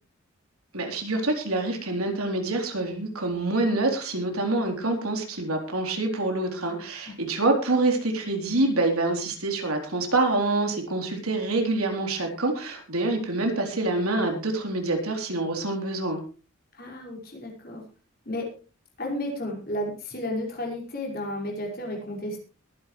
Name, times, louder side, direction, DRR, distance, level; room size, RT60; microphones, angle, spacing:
voice 1, 0.7-16.2, right 2 dB, 85° right, 2 dB, 3.9 m, -26 dB
voice 2, 16.7-17.8 18.3-18.5 19.0-22.4, left 1 dB, 45° left, -1 dB, 5.5 m, -32 dB
22.0 x 10.5 x 3.3 m, 0.37 s
head